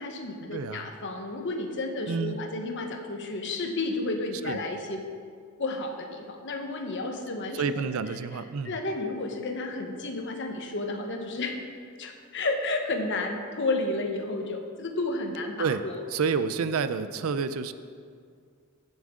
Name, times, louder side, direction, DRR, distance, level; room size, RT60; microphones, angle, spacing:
voice 1, 0.0-5.0 5.6-7.9 8.6-11.6 12.0-15.5 15.8-16.0, left 2 dB, 55° left, 4 dB, 1.1 m, -32 dB
voice 2, 0.5-0.9 2.1-2.4 4.4-4.6 7.5-8.8 15.6-15.8 16.1-17.7, right 5 dB, 70° right, 12 dB, 0.5 m, -29 dB
15.0 x 7.4 x 3.7 m, 2.2 s
head